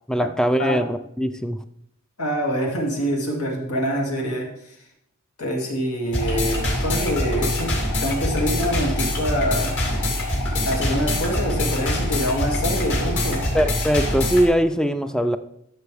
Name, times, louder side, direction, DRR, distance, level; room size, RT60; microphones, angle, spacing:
voice 1, 0.1-1.6 13.5-15.4, equal, 5° left, 10 dB, 0.3 m, -21 dB
voice 2, 2.2-4.8 5.4-7.7 8.0-9.8 10.6-13.5, equal, 80° left, 0 dB, 2.4 m, -25 dB
sound 1, 6.1-14.5, left 1 dB, 55° left, 2.6 m, -24 dB
13.0 x 6.9 x 3.4 m, 0.76 s
head